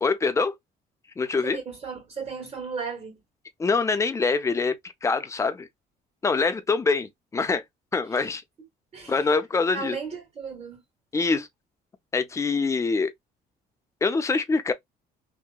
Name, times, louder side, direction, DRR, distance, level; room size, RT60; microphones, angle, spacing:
voice 1, 0.0-0.5 1.2-1.6 3.6-4.7 5.0-5.7 6.2-7.6 7.9-8.4 9.1-10.0 11.1-11.5 12.1-13.1 14.0-14.7, left 4 dB, 15° left, 0.4 m, -24 dB
voice 2, 1.4-3.2 8.1-8.2 8.9-9.3 9.7-10.8, right 5 dB, 35° right, 1.4 m, -35 dB
2.7 x 2.1 x 2.2 m
cardioid pair, 110°, 17 cm